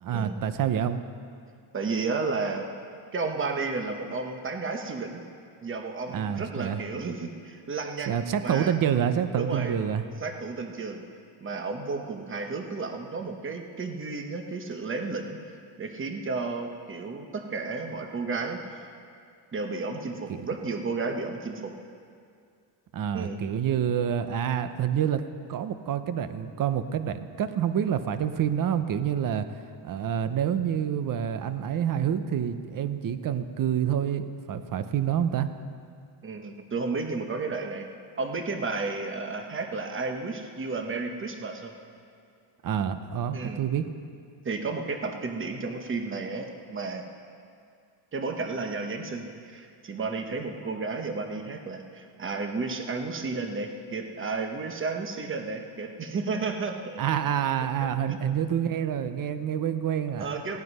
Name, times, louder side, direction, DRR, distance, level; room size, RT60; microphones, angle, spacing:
voice 1, 0.0-1.0 6.1-6.8 8.1-10.0 22.9-25.2 25.5-29.5 29.8-35.5 42.6-43.9 57.0-60.3, right 9 dB, 40° right, 11 dB, 0.7 m, -27 dB
voice 2, 1.7-2.7 3.1-5.2 5.6-8.7 9.4-9.8 10.2-11.0 11.4-15.4 15.8-18.8 19.5-21.7 23.1-23.4 36.2-37.9 38.2-41.7 43.3-43.6 44.4-47.1 48.1-57.0 58.1-58.2 60.2-60.6, right 3 dB, 25° right, 4 dB, 1.1 m, -32 dB
16.5 x 10.5 x 5.4 m, 2.3 s
cardioid pair, 150°, 50 cm